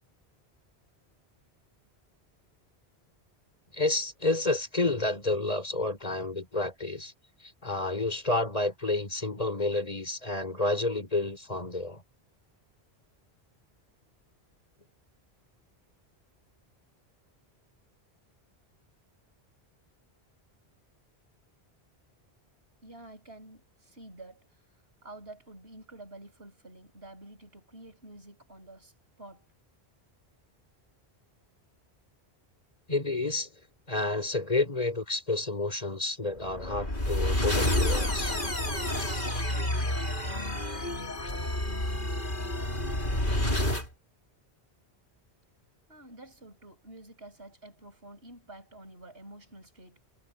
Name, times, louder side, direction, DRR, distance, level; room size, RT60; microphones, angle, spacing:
voice 1, 3.7-7.1 7.4-12.0 32.9-33.5 33.9-38.4, left 2 dB, 35° left, 4.5 m, -30 dB
voice 2, 22.8-24.6 25.0-29.5 45.9-50.0, right 1 dB, 70° right, 7.7 m, -49 dB
sound 1, 36.5-43.9, left 1 dB, 50° left, 4.8 m, -29 dB
omnidirectional pair, 1.1 m